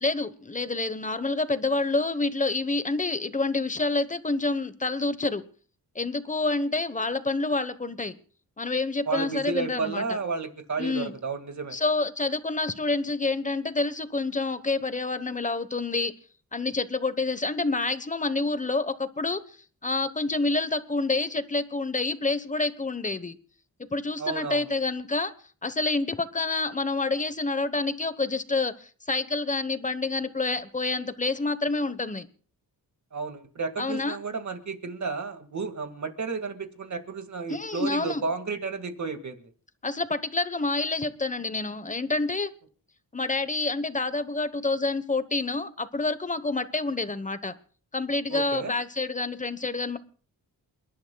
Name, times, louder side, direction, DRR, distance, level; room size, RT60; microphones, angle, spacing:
voice 1, 0.0-5.4 5.9-8.1 8.6-10.0 10.8-11.1 11.7-16.1 16.5-19.6 19.8-23.4 23.8-25.3 25.6-32.3 33.8-34.2 37.5-38.2 39.8-42.5 43.1-47.5 47.9-50.0, left 3 dB, 20° left, 13 dB, 1.1 m, -28 dB
voice 2, 9.1-11.8 24.2-24.6 33.1-39.5 48.3-48.8, right 4 dB, 50° right, 7 dB, 2.0 m, -32 dB
29.0 x 11.5 x 2.3 m, 0.41 s
wide cardioid pair, 95°, 38 cm